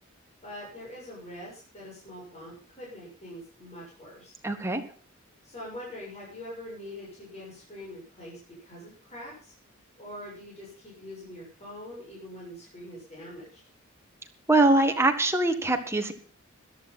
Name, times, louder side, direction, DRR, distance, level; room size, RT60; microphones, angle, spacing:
voice 1, 0.4-4.3 5.4-9.5 10.0-13.6, left 1 dB, 30° left, -4 dB, 7.0 m, -43 dB
voice 2, 4.4-4.8 14.5-16.1, right 2 dB, 10° right, 5 dB, 1.7 m, -23 dB
14.0 x 11.0 x 5.6 m, 0.41 s
head